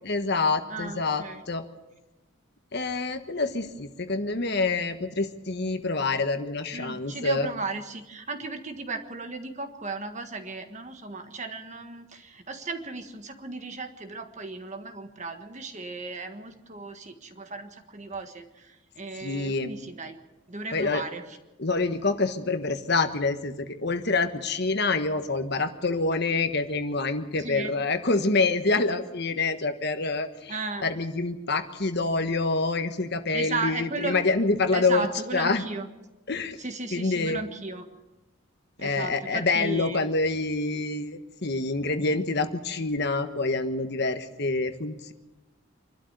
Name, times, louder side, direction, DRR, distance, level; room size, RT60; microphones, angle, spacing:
voice 1, 0.0-1.6 2.7-7.5 19.2-19.7 20.7-21.0 21.6-35.1 35.3-35.6 36.3-36.6 36.9-37.4 38.8-45.1, left 3 dB, 50° left, 8 dB, 1.3 m, -27 dB
voice 2, 0.7-1.4 6.7-20.2 20.5-21.4 27.4-27.7 30.5-30.8 33.3-34.2 34.7-35.9 36.6-37.8 38.8-40.1, right 3 dB, 35° right, 6 dB, 1.6 m, -35 dB
25.5 x 12.5 x 8.1 m, 1.1 s
head